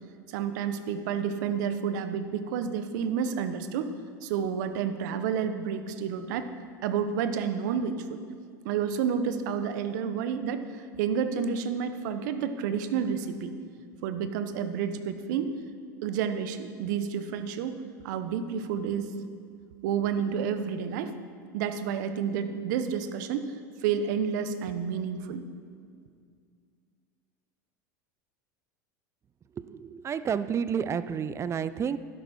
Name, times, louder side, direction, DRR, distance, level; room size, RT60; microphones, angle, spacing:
voice 1, 0.3-3.9 4.2-6.5 6.8-8.2 8.6-13.6 14.0-15.5 16.0-19.1 19.8-21.1 21.5-23.5 23.8-25.4, right 7 dB, 70° right, 10 dB, 0.9 m, -30 dB
voice 2, 29.7-32.0, right 7 dB, 30° right, 15 dB, 0.5 m, -30 dB
12.0 x 11.0 x 4.3 m, 2.1 s
hypercardioid pair, 90°, 10 cm